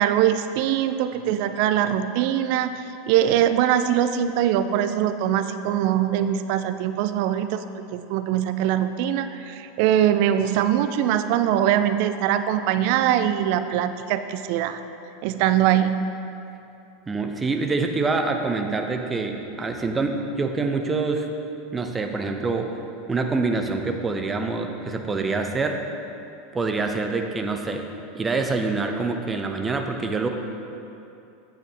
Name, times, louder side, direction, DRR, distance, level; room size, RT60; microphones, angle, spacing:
voice 1, 0.0-7.6 7.9-14.8 15.2-16.1, right 10 dB, 55° right, 11 dB, 0.3 m, -22 dB
voice 2, 17.1-21.3 21.7-22.7 23.1-25.8 26.5-27.8 28.1-30.3, right 3 dB, 20° right, 4 dB, 0.7 m, -26 dB
9.2 x 7.5 x 3.1 m, 2.8 s
figure-of-eight pair, 85°, 0 cm